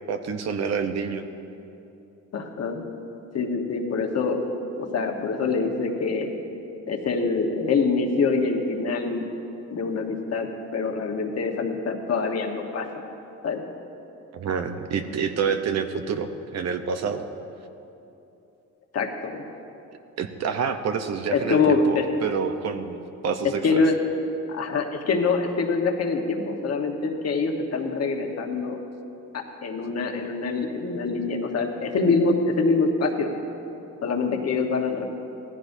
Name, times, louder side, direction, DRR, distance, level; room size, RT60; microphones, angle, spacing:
voice 1, 0.1-1.2 14.3-17.2 20.2-23.6, right 6 dB, 60° right, 8 dB, 0.9 m, -28 dB
voice 2, 2.3-2.8 3.3-4.4 4.8-6.3 6.9-9.2 9.7-12.9 13.4-13.6 18.9-19.4 21.3-22.0 23.6-24.0 24.5-28.8 29.3-33.3 34.0-35.1, left 4 dB, 55° left, 3 dB, 1.3 m, -25 dB
16.5 x 14.5 x 2.7 m, 2.9 s
cardioid pair, 90°, 30 cm